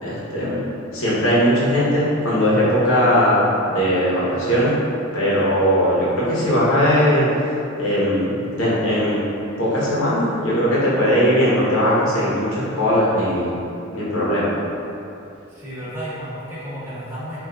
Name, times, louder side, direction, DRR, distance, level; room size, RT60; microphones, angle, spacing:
voice 1, 0.0-4.8 5.1-7.3 7.8-9.2 9.6-13.5 13.9-14.6, equal, 85° left, -8 dB, 0.9 m, -19 dB
voice 2, 15.5-17.4, equal, 15° right, -11 dB, 0.9 m, -32 dB
3.7 x 2.5 x 2.3 m, 2.7 s
head